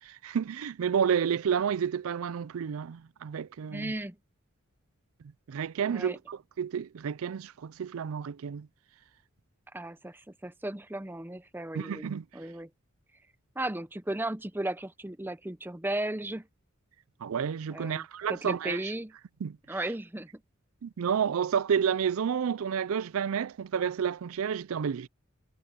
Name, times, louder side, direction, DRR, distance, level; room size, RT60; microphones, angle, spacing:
voice 1, 0.0-3.9 5.5-8.7 11.7-12.2 17.2-18.8 19.4-19.6 20.8-25.1, right 7 dB, 80° right, 0.4 m, -30 dB
voice 2, 3.7-4.2 5.9-6.2 9.7-12.1 12.3-12.7 13.6-16.5 17.7-19.1 19.7-20.3, right 1 dB, 10° right, 0.6 m, -35 dB
head